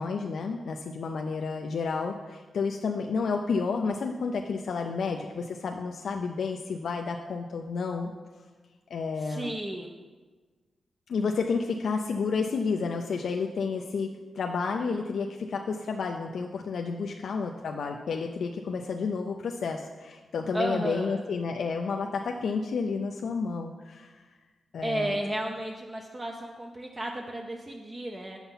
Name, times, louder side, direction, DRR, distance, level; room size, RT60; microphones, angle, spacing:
voice 1, 0.0-8.1 8.9-9.5 11.1-14.1 14.4-24.2 24.7-25.1, left 5 dB, 75° left, 2 dB, 0.4 m, -31 dB
voice 2, 9.2-9.9 20.5-21.2 24.8-28.4, right 1 dB, 25° right, 2 dB, 0.6 m, -33 dB
6.9 x 5.7 x 5.6 m, 1.3 s
cardioid pair, 80°, 0 cm